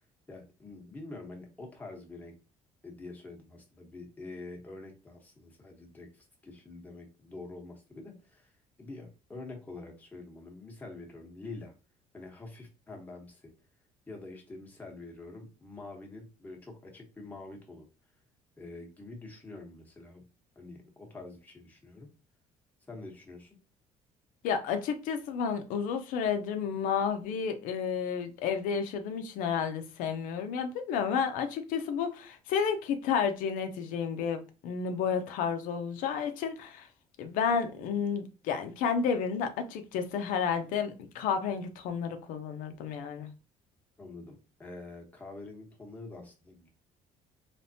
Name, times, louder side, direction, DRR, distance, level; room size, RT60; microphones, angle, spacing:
voice 1, 0.3-2.3 2.8-8.5 8.8-11.7 12.1-13.5 14.1-17.8 18.6-20.2 20.6-22.1 22.9-23.6 44.0-46.7, left 2 dB, 10° left, 1.1 m, -46 dB
voice 2, 24.4-36.9 37.2-43.3, left 6 dB, 85° left, 0.7 m, -31 dB
3.5 x 3.2 x 2.7 m
cardioid pair, 140°, 13 cm